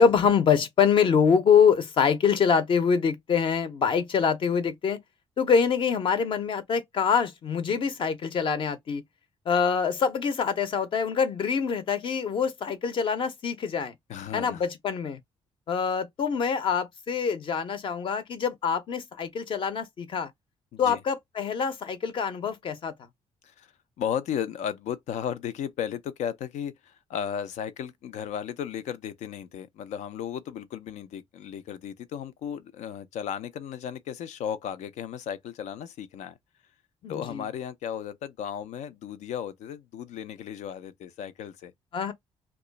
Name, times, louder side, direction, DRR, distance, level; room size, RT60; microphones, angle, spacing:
voice 1, 0.0-5.0 5.4-9.0 9.5-13.9 14.3-15.2 15.7-20.3 20.8-22.9 37.0-37.4 41.9-42.1, left 6 dB, 45° left, 0.7 m, -25 dB
voice 2, 14.1-14.7 20.7-21.0 23.4-23.7 24.0-36.4 37.1-41.7, left 9 dB, 85° left, 0.6 m, -35 dB
3.0 x 2.3 x 3.9 m
cardioid pair, 150°, 12 cm